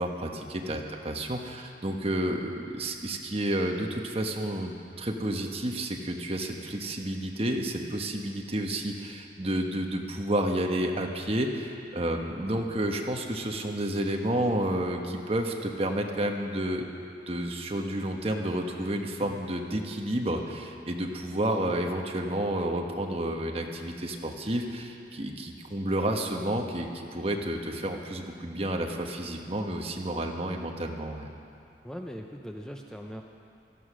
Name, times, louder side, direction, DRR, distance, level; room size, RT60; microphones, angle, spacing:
voice 1, 0.0-16.8 17.3-31.3, right 1 dB, 35° right, 2 dB, 1.3 m, -30 dB
voice 2, 31.8-33.2, equal, 5° left, 2 dB, 0.7 m, -40 dB
16.5 x 13.5 x 6.3 m, 2.5 s
head